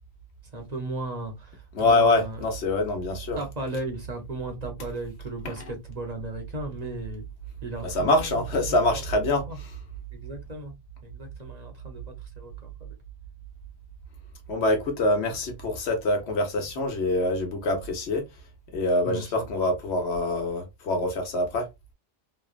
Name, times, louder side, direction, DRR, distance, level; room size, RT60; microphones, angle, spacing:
voice 1, 0.5-2.4 3.4-7.3 7.6-9.0 9.5-9.6 10.1-10.7 11.0-12.9 19.1-19.7, right 2 dB, 45° right, 0.8 m, -36 dB
voice 2, 1.7-3.4 5.4-5.5 7.8-9.4 14.5-18.2 18.7-21.7, left 2 dB, 75° left, 1.1 m, -25 dB
3.1 x 2.2 x 2.3 m
omnidirectional pair, 1.1 m